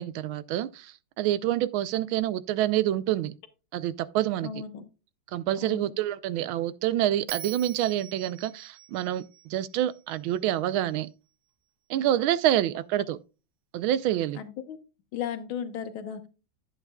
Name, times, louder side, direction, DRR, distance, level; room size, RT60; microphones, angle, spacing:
voice 1, 0.0-3.3 3.7-4.6 5.3-11.1 11.9-13.2 13.7-14.4, right 12 dB, 85° right, 1.5 m, -27 dB
voice 2, 4.4-4.8 5.6-5.9 14.4-14.8 15.1-16.3, left 8 dB, 80° left, 1.9 m, -35 dB
Bell, 7.3-10.5, right 12 dB, 70° right, 1.0 m, -44 dB
11.0 x 8.2 x 2.3 m
omnidirectional pair, 2.2 m